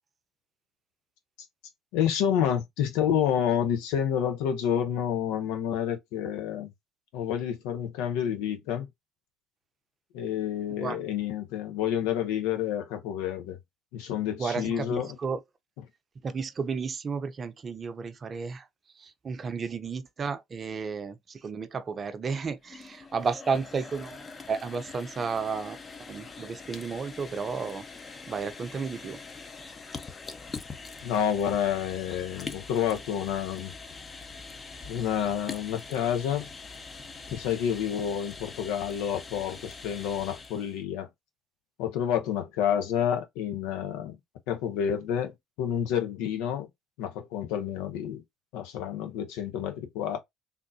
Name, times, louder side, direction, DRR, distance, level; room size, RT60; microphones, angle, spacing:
voice 1, 1.9-6.7 7.1-8.9 10.1-13.6 13.9-15.1 31.0-33.7 34.9-36.5 37.3-41.1 41.8-44.2 44.5-45.3 45.6-46.7 47.0-48.2 48.5-50.2, left 9 dB, 80° left, 0.9 m, -29 dB
voice 2, 14.4-15.4 16.2-18.7 18.9-29.2, right 5 dB, 40° right, 0.7 m, -33 dB
sound 1, 22.5-40.8, left 4 dB, 35° left, 0.8 m, -43 dB
3.7 x 2.6 x 2.7 m
hypercardioid pair, 65°, 0 cm